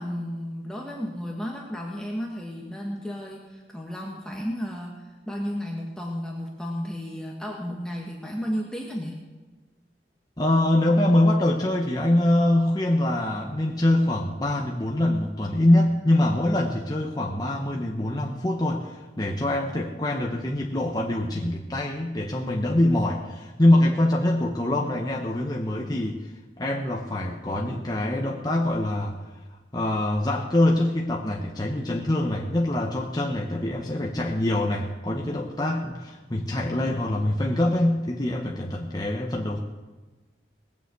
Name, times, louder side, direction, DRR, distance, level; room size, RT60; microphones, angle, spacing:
voice 1, 0.0-9.2, equal, 5° left, -2 dB, 1.5 m, -33 dB
voice 2, 10.4-29.1 29.7-39.6, left 1 dB, 25° left, 0 dB, 1.1 m, -24 dB
19.5 x 7.1 x 8.2 m, 1.3 s
head